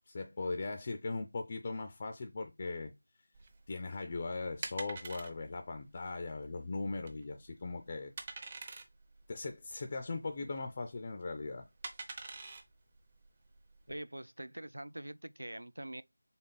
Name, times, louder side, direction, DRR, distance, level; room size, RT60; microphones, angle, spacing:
voice 1, 0.1-2.9 3.7-8.1 9.3-11.7, left 3 dB, 30° left, 0.4 m, -39 dB
sound 1, 3.3-14.0, right 3 dB, 25° right, 0.6 m, -48 dB
voice 2, 13.9-16.0, right 1 dB, 80° right, 0.4 m, -44 dB
4.0 x 3.5 x 3.8 m
figure-of-eight pair, 170°, 0 cm